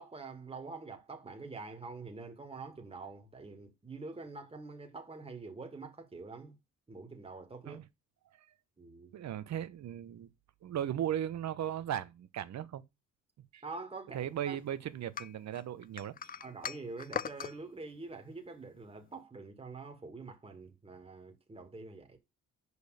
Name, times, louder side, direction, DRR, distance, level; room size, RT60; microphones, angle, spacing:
voice 1, 0.0-6.6 6.9-7.8 8.8-9.1 13.6-14.6 16.4-22.2, right 3 dB, 20° right, 2.2 m, -46 dB
voice 2, 9.1-10.3 10.6-12.8 13.5-13.6 14.1-16.1, right 10 dB, 65° right, 1.1 m, -37 dB
sound 1, 15.2-17.6, left 7 dB, 30° left, 0.4 m, -40 dB
6.3 x 5.2 x 6.6 m
cardioid pair, 90°, 30 cm